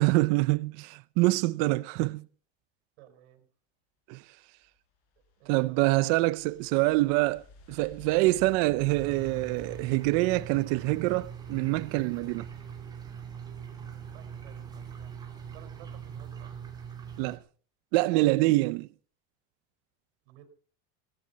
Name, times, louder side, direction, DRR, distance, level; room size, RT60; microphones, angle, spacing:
voice 1, 0.0-2.3 4.1-4.2 5.5-12.5 17.2-17.4 17.9-18.9, right 20 dB, 50° right, 0.7 m, -25 dB
voice 2, 3.0-3.5 5.4-6.0 13.8-15.1 15.5-16.6 20.2-20.4, right 12 dB, 75° right, 4.6 m, -55 dB
sound 1, 4.6-11.9, left 5 dB, 50° left, 4.9 m, -54 dB
sound 2, 8.9-17.4, right 7 dB, 10° right, 3.0 m, -42 dB
17.5 x 16.0 x 4.1 m
cardioid pair, 175°, 32 cm